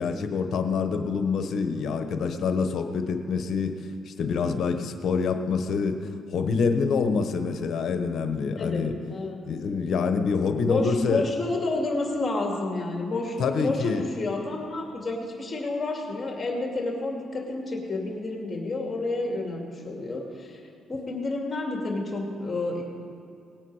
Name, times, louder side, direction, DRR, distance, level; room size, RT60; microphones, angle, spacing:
voice 1, 0.0-8.9 9.5-11.3 13.4-14.1, left 5 dB, 65° left, 7 dB, 1.0 m, -26 dB
voice 2, 8.6-9.4 10.6-20.6 20.9-22.8, left 2 dB, 30° left, 0 dB, 2.4 m, -30 dB
19.0 x 9.1 x 4.8 m, 2.5 s
cardioid pair, 90°, 0 cm